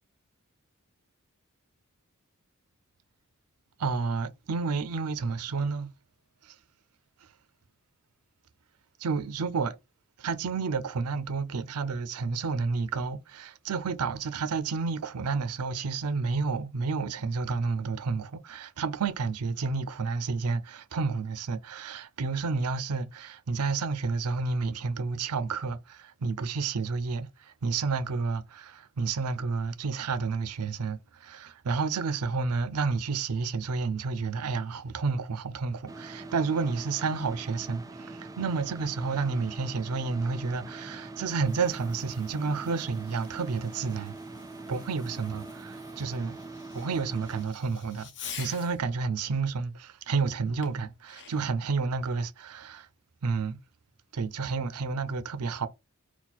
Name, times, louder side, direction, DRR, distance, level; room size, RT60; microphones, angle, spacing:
voice 1, 3.8-5.9 6.4-6.6 9.0-9.8 10.2-44.1 44.7-46.4 46.7-52.9 53.2-53.6 54.1-55.7, right 4 dB, 90° right, 0.5 m, -30 dB
sound 1, 35.9-47.4, right 2 dB, 15° right, 0.4 m, -43 dB
Fireworks, 41.2-48.9 50.6-51.6, left 7 dB, 55° left, 0.8 m, -48 dB
4.2 x 2.2 x 4.0 m
head